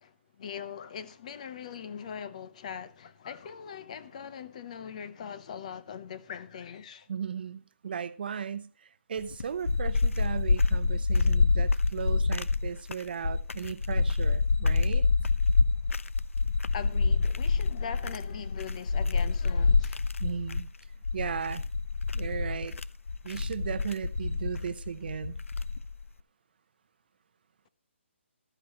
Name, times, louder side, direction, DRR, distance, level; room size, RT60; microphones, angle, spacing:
voice 1, 0.0-7.1 16.7-20.0, left 7 dB, 35° left, 0.8 m, -41 dB
voice 2, 7.1-15.1 20.2-20.7 21.1-21.7 22.1-22.8 23.2-25.4, right 7 dB, 50° right, 0.8 m, -36 dB
sound 1, 9.2-26.0, left 4 dB, 90° left, 0.6 m, -27 dB
14.0 x 12.0 x 3.0 m
hypercardioid pair, 170°, 7 cm